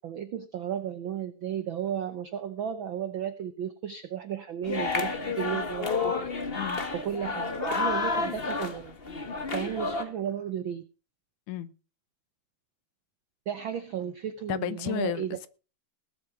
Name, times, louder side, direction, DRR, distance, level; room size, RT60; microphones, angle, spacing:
voice 1, 0.0-6.1 6.9-9.0 9.5-10.8 13.5-15.4, right 9 dB, 80° right, 1.1 m, -34 dB
sound 1, 4.6-10.0, left 4 dB, 35° left, 0.9 m, -30 dB
voice 2, 14.5-15.5, left 13 dB, 80° left, 2.4 m, -32 dB
18.5 x 8.1 x 5.8 m
omnidirectional pair, 3.5 m